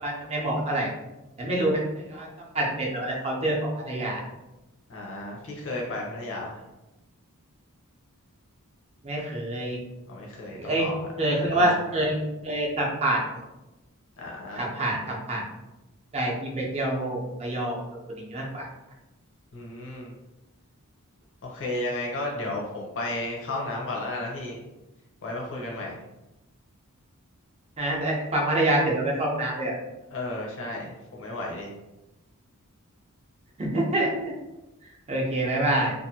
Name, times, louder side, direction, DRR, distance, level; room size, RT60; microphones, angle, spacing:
voice 1, 0.0-0.9 1.4-1.8 2.1-2.3 2.5-3.6 3.9-4.2 9.0-9.8 10.6-10.9 11.2-12.2 12.4-13.2 14.6-15.0 15.3-15.4 16.1-17.8 18.3-18.7 27.8-29.7 33.6-34.3 35.1-35.9, right 1 dB, 30° right, -2 dB, 0.6 m, -26 dB
voice 2, 4.9-6.6 10.1-11.1 14.2-14.7 19.5-20.1 21.4-24.6 25.2-26.0 30.1-31.7, left 2 dB, 60° left, -2 dB, 0.7 m, -33 dB
2.6 x 2.5 x 2.7 m, 1.0 s
head